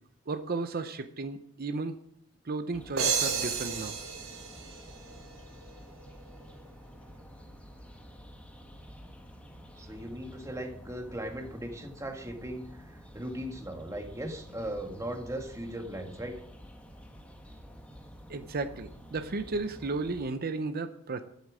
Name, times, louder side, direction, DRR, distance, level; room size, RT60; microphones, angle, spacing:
voice 1, 0.3-1.9 2.4-3.9 18.3-21.2, right 3 dB, 45° right, 9 dB, 0.7 m, -34 dB
sound 1, 2.7-20.3, equal, 5° left, 1.5 m, -50 dB
sound 2, 3.0-5.6, right 6 dB, 75° right, 3.0 m, -32 dB
voice 2, 9.7-16.4, right 1 dB, 15° right, 4 dB, 1.6 m, -38 dB
12.5 x 8.3 x 6.2 m, 0.71 s
head